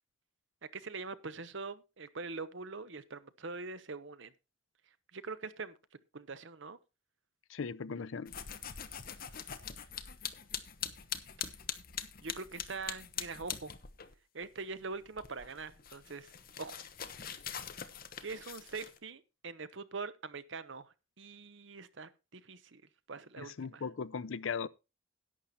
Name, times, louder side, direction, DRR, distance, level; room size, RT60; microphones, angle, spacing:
voice 1, 0.7-4.3 5.1-5.8 6.1-6.8 12.2-13.7 14.3-16.3 16.6-16.8 18.2-22.8 23.1-23.8, right 4 dB, 65° right, 0.9 m, -43 dB
voice 2, 7.5-8.4 23.4-24.7, left 5 dB, 75° left, 0.5 m, -38 dB
sound 1, 8.3-14.1 14.4-19.0, left 8 dB, 45° left, 1.1 m, -43 dB
11.5 x 8.6 x 4.2 m
head